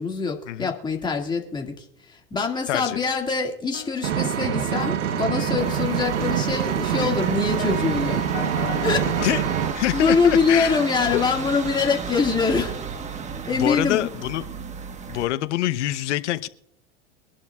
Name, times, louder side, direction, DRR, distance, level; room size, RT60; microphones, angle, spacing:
voice 1, 0.0-8.2 8.8-9.1 9.9-12.8 13.4-14.1, left 5 dB, 10° left, 2 dB, 2.1 m, -24 dB
voice 2, 2.7-3.0 9.2-9.5 9.7-10.8 11.1-11.2 13.5-14.4 15.1-16.5, left 14 dB, 75° left, 14 dB, 0.9 m, -25 dB
sound 1, 3.7-9.3, left 15 dB, 55° left, 1.3 m, -38 dB
Vehicle, 4.0-9.7, right 9 dB, 80° right, 1.1 m, -25 dB
sound 2, 5.6-15.2, right 5 dB, 20° right, 1.3 m, -33 dB
22.5 x 11.5 x 2.4 m, 0.72 s
hypercardioid pair, 120°, 36 cm